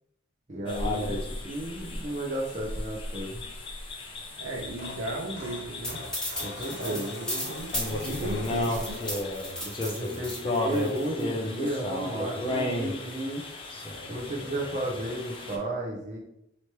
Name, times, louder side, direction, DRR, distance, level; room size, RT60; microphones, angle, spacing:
voice 1, 0.5-3.4 6.4-7.2 9.6-13.4 14.1-16.2, right 1 dB, 35° right, -2 dB, 0.6 m, -33 dB
sound 1, 0.7-15.6, left 1 dB, 25° left, 0.5 m, -34 dB
voice 2, 4.3-6.0 6.5-9.0, right 1 dB, 80° right, 0 dB, 0.9 m, -36 dB
sound 2, 4.4-10.1 10.5-10.8 12.0-12.1 12.4-12.5 12.8-12.9, left 1 dB, 60° left, 1.0 m, -44 dB
sound 3, 5.8-11.2, left 1 dB, 5° left, 0.9 m, -35 dB
3.1 x 2.9 x 4.6 m, 0.80 s
head